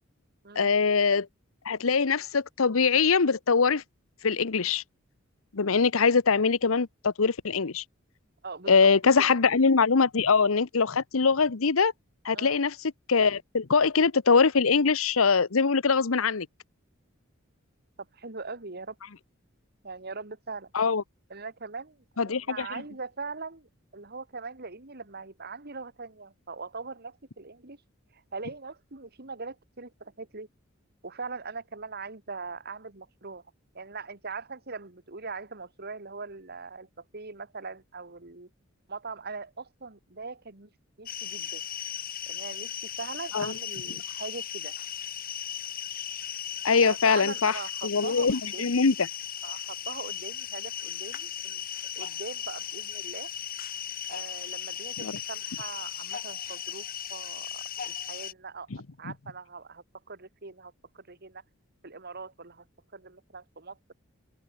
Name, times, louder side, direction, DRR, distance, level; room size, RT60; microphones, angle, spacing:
voice 1, 0.6-1.3 1.6-3.8 4.2-4.8 5.5-7.8 8.7-11.9 12.2-12.8 13.1-16.5 20.7-21.0 22.2-22.7 43.3-43.5 46.6-47.6 47.8-48.9 55.0-55.1, left 5 dB, 85° left, 0.9 m, -23 dB
voice 2, 8.4-8.8 9.2-9.3 12.3-12.6 18.1-19.0 19.8-20.7 21.3-27.8 28.1-30.5 31.0-33.4 33.7-38.5 38.9-40.7 41.0-41.6 42.3-44.7 46.8-48.8 49.4-51.6 51.9-53.3 54.1-56.8 57.1-61.4 61.8-62.6 62.9-63.8, right 4 dB, 50° right, 2.4 m, -41 dB
sound 1, 41.1-58.3, left 9 dB, 45° left, 3.1 m, -37 dB
head